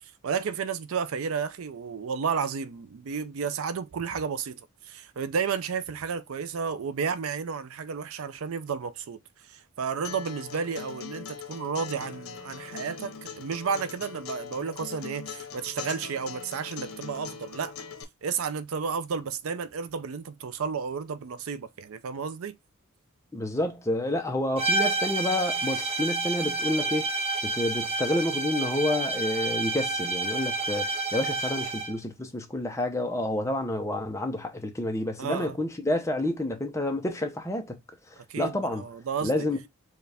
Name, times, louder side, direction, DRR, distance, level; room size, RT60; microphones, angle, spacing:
voice 1, 0.2-9.2 9.5-17.8 18.2-22.5 35.2-35.6 38.3-39.3, right 6 dB, 70° right, 0.5 m, -32 dB
Acoustic guitar, 10.0-18.0, left 6 dB, 80° left, 0.8 m, -41 dB
voice 2, 23.3-27.1 27.4-37.8 38.1-38.8 39.2-39.6, left 1 dB, 15° left, 0.7 m, -29 dB
sound 1, 24.6-32.0, right 2 dB, 30° right, 0.7 m, -29 dB
4.6 x 2.4 x 3.4 m
head